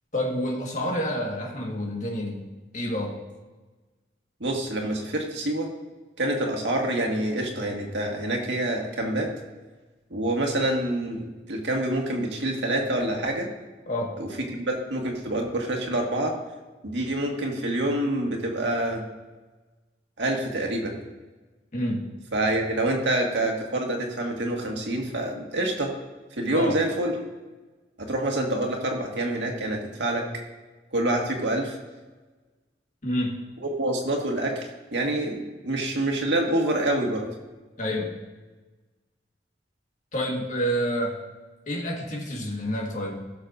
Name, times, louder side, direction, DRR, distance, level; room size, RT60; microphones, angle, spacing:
voice 1, 0.1-2.5 2.7-3.2 13.9-14.1 21.7-22.1 26.5-26.8 33.0-33.4 37.8-38.1 40.1-41.2 41.7-43.2, equal, 45° left, 0 dB, 1.7 m, -28 dB
voice 2, 4.4-5.7 6.2-9.3 10.1-13.5 14.2-16.3 16.8-19.0 20.2-20.9 22.3-25.9 26.4-27.1 28.0-30.3 30.9-31.8 33.6-37.3, right 1 dB, 90° right, 0 dB, 1.9 m, -27 dB
17.5 x 6.6 x 2.7 m, 1.3 s
head